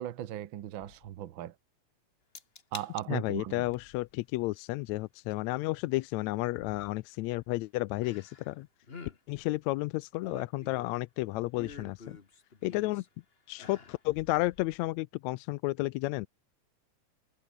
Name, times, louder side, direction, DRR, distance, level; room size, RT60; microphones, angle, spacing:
voice 1, 0.0-1.5 2.7-3.7, right 12 dB, 65° right, 1.2 m, -38 dB
Thump thud, 0.7-1.3 3.6-4.3 6.6-7.0 9.3-9.8 11.6-12.2 14.0-15.0, left 8 dB, 50° left, 1.1 m, -58 dB
sound 1, 2.3-2.9 3.3-3.7 5.3-5.4 8.0-8.6 8.8-9.2 9.9-11.0 11.5-13.1 13.5-14.0 14.4-14.5, left 4 dB, 30° left, 1.3 m, -47 dB
voice 2, 3.1-8.7 9.3-12.2 12.6-13.0 13.5-16.3, left 20 dB, 80° left, 1.8 m, -32 dB
omnidirectional pair, 3.3 m